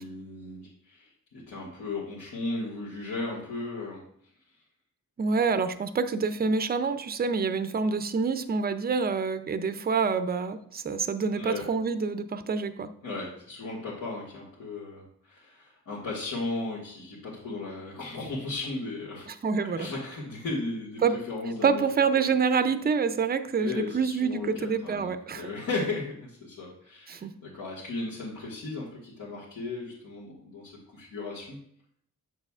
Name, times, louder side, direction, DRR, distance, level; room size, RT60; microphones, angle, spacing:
voice 1, 0.0-4.0 11.3-11.7 13.0-19.3 19.7-21.8 23.6-31.6, left 3 dB, 75° left, -8 dB, 2.0 m, -36 dB
voice 2, 5.2-12.9 19.3-19.9 21.0-21.2 21.6-25.4 27.1-27.3, right 5 dB, 30° right, 11 dB, 0.5 m, -27 dB
8.0 x 6.5 x 2.4 m, 0.65 s
wide cardioid pair, 115°, 34 cm